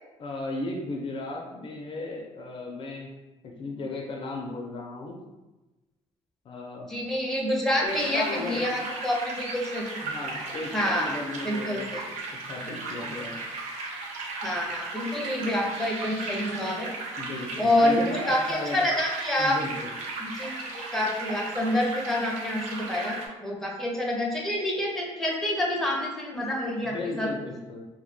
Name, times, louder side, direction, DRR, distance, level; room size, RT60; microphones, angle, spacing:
voice 1, 0.2-3.1 3.6-5.2 6.4-6.9 7.8-8.6 10.0-11.9 12.3-13.5 17.2-18.8 19.4-20.0 26.8-27.9, left 2 dB, 50° left, 0 dB, 0.4 m, -35 dB
voice 2, 6.9-9.9 10.7-12.0 14.4-16.9 17.6-19.5 20.2-20.5 20.9-27.3, left 1 dB, 5° left, -2 dB, 0.5 m, -27 dB
sound 1, 7.9-23.3, right 3 dB, 90° right, 0.4 m, -36 dB
2.2 x 2.0 x 3.1 m, 1.1 s
cardioid pair, 95°, 12 cm